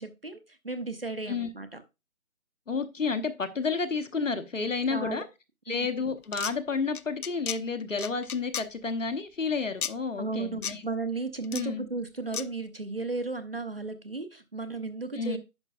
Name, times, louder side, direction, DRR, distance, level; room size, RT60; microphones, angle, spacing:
voice 1, 0.0-1.8 4.9-5.2 5.7-5.9 10.2-15.4, right 3 dB, 40° right, 10 dB, 0.7 m, -34 dB
voice 2, 2.7-5.2 5.7-10.8 11.5-11.9 15.1-15.4, left 4 dB, 60° left, 8 dB, 1.0 m, -30 dB
sound 1, 6.2-6.5 6.9-7.6 8.0-8.7 9.8-9.9 10.6-10.7 11.4-11.6 12.3-12.4, left 8 dB, 85° left, 0.7 m, -33 dB
10.5 x 5.9 x 2.4 m, 0.26 s
figure-of-eight pair, 180°, 43 cm